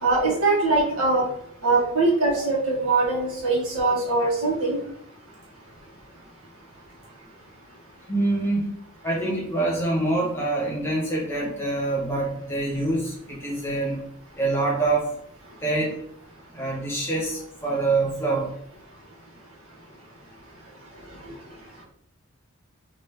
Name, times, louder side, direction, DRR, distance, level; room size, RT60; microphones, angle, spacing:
voice 1, 0.0-1.2 1.6-4.8, right 3 dB, 90° right, -4 dB, 1.2 m, -22 dB
voice 2, 8.1-8.7 9.0-14.0 14.4-15.1 15.6-16.0 16.5-18.5, right 2 dB, 10° left, -4 dB, 0.9 m, -25 dB
3.0 x 2.6 x 3.2 m, 0.67 s
head